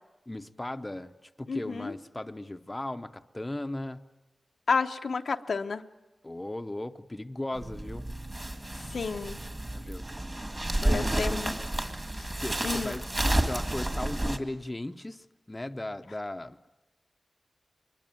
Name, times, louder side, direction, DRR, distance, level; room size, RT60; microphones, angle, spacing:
voice 1, 0.3-4.0 6.2-8.1 9.7-10.1 10.8-11.4 12.3-13.1 13.4-16.7, left 1 dB, 15° left, 8 dB, 0.8 m, -37 dB
voice 2, 1.5-1.9 4.7-5.8 8.8-9.4 10.8-11.5 12.2-12.3 12.6-12.9, left 5 dB, 75° left, 7 dB, 0.8 m, -31 dB
sound 1, 7.5-14.4, right 1 dB, 25° right, 1.9 m, -31 dB
24.0 x 21.5 x 9.2 m, 1.1 s
wide cardioid pair, 110°, 0 cm